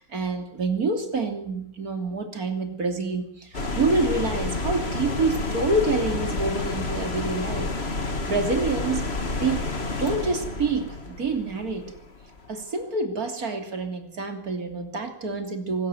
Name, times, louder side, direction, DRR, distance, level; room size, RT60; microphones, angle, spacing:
voice 1, 0.0-7.8 8.1-9.1 9.4-9.7 10.0-12.0 12.5-15.9, right 3 dB, 45° right, 6 dB, 3.5 m, -27 dB
sound 1, 3.5-12.5, left 3 dB, 30° left, 2.3 m, -30 dB
24.0 x 13.5 x 9.4 m, 0.71 s
omnidirectional pair, 2.3 m